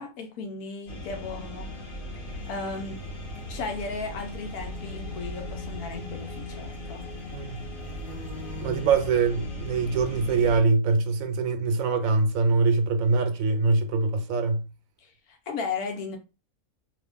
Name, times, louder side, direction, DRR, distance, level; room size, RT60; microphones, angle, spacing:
voice 1, 0.0-1.7 2.3-3.0 3.5-7.0 15.0-16.2, left 4 dB, 80° left, 1.2 m, -36 dB
sound 1, 0.9-10.6, left 1 dB, 40° left, 1.0 m, -37 dB
sound 2, 2.3-9.0, left 3 dB, 30° right, 0.6 m, -48 dB
voice 2, 8.6-14.7, right 4 dB, 70° right, 0.9 m, -23 dB
2.8 x 2.4 x 3.5 m
omnidirectional pair, 1.6 m